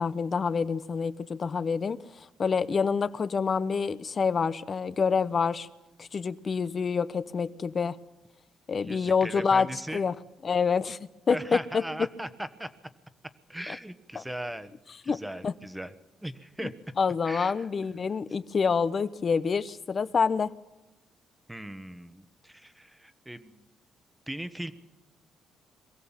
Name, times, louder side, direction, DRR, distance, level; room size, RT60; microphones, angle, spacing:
voice 1, 0.0-5.7 6.0-8.0 8.7-10.1 10.4-11.0 11.3-11.8 13.7-13.8 14.1-14.2 15.1-15.5 16.6-16.7 17.0-20.5, left 5 dB, 40° left, 14 dB, 0.9 m, -27 dB
voice 2, 8.7-10.0 11.3-12.7 13.5-14.7 15.0-15.9 16.2-16.7 17.2-17.7 21.5-23.6 24.3-24.7, right 1 dB, 5° right, 11 dB, 1.3 m, -38 dB
22.5 x 15.5 x 7.4 m, 1.0 s
cardioid pair, 90°, 0 cm